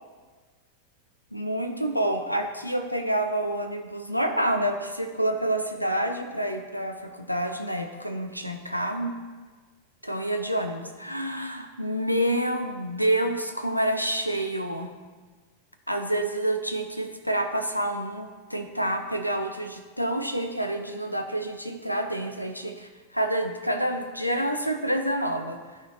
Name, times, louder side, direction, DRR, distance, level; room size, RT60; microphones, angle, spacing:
voice 1, 1.3-9.2 10.0-14.9 15.9-25.6, right 1 dB, 90° left, 6 dB, 0.4 m, -28 dB
12.0 x 4.3 x 2.6 m, 1.4 s
figure-of-eight pair, 90°, 0 cm